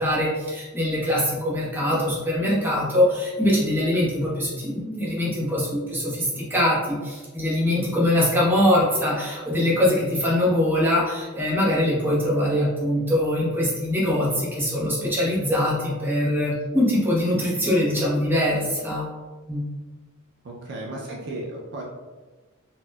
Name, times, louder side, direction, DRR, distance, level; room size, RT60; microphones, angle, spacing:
voice 1, 0.0-19.1 19.5-19.6, left 1 dB, 10° right, -6 dB, 0.8 m, -23 dB
voice 2, 20.4-21.8, right 1 dB, 55° right, -2 dB, 0.5 m, -34 dB
4.1 x 2.3 x 2.3 m, 1.3 s
head